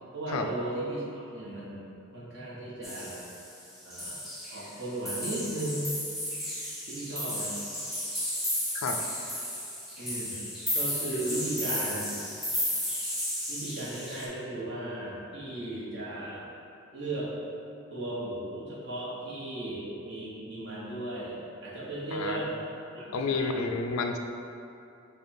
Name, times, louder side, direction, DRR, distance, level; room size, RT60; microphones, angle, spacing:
voice 1, 0.1-3.2 3.8-4.2 4.5-5.9 6.9-7.5 10.0-10.4 10.7-12.2 13.5-16.4 16.9-17.3 17.9-22.5 22.9-23.7, right 1 dB, 55° right, -7 dB, 1.1 m, -36 dB
sound 1, 2.8-3.6 3.9-4.8 5.1-14.3, equal, ahead, 0.6 m, -34 dB
voice 2, 22.1-22.5 23.1-24.2, left 4 dB, 70° left, 5 dB, 0.3 m, -30 dB
5.1 x 2.3 x 4.3 m, 2.7 s
head